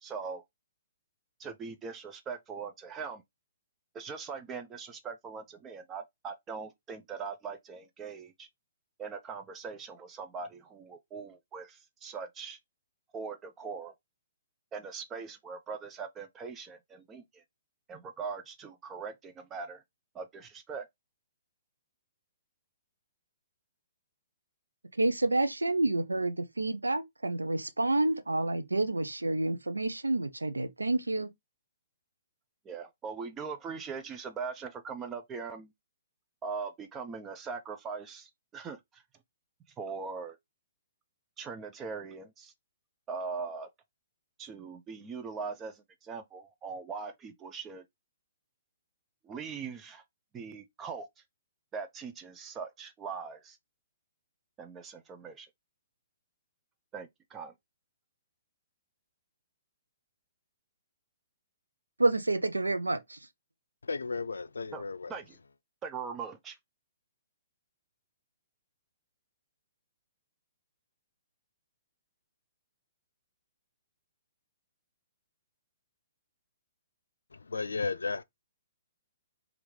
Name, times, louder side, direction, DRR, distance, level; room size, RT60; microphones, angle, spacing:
voice 1, 0.0-0.4 1.4-3.2 3.9-8.5 9.0-12.6 13.1-13.9 14.7-17.4 17.9-19.8 20.1-20.9 32.7-35.7 36.4-39.0 39.8-40.4 41.4-42.5 43.1-43.7 44.4-47.8 49.2-50.0 50.3-51.1 51.7-53.6 54.6-55.5 56.9-57.5 64.7-64.8 65.1-65.4 65.8-66.6, right 5 dB, 20° right, 0.4 m, -41 dB
voice 2, 25.0-31.3 62.0-63.2, right 2 dB, 90° right, 0.5 m, -29 dB
voice 3, 63.8-65.2 77.3-78.2, left 4 dB, 80° left, 0.3 m, -34 dB
3.4 x 2.4 x 3.0 m
figure-of-eight pair, 125°, 0 cm